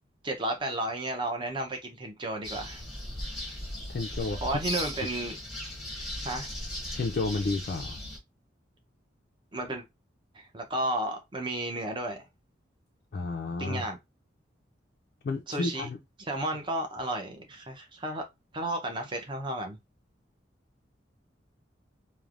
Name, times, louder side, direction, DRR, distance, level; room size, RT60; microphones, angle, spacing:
voice 1, 0.2-2.8 4.4-5.4 6.2-6.5 9.5-9.8 10.3-12.2 13.6-14.0 15.5-15.9 16.3-18.3 18.5-19.8, right 1 dB, 25° right, 0.6 m, -33 dB
sound 1, 2.4-8.2, left 1 dB, ahead, 1.0 m, -37 dB
voice 2, 3.9-4.6 6.9-8.0 13.1-13.8 15.2-16.0, left 3 dB, 55° left, 0.3 m, -31 dB
3.2 x 2.1 x 2.4 m
head